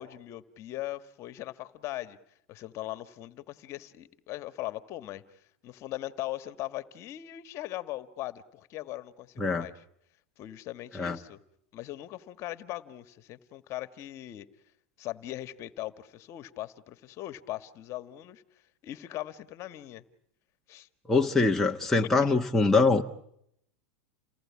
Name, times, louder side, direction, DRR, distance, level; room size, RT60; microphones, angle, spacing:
voice 1, 0.0-2.2 2.5-9.8 10.4-11.4 11.7-14.5 15.0-18.4 18.8-20.0 20.7-20.9 22.2-22.3, left 15 dB, 40° left, 1.6 m, -40 dB
voice 2, 21.1-23.0, left 3 dB, 5° left, 1.3 m, -23 dB
29.5 x 19.0 x 8.6 m
supercardioid pair, 130°, 7 cm